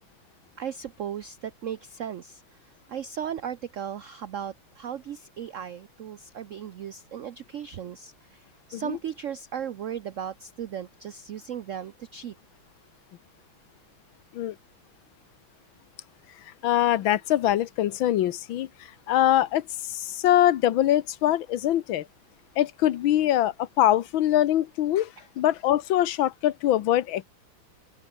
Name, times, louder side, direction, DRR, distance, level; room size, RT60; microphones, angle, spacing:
voice 1, 0.6-2.4 2.9-8.4 8.7-12.3, right 9 dB, 80° right, 0.7 m, -36 dB
voice 2, 16.6-18.7 19.1-22.0 22.6-25.1 25.4-27.2, left 12 dB, 80° left, 1.7 m, -23 dB
open air
omnidirectional pair, 2.2 m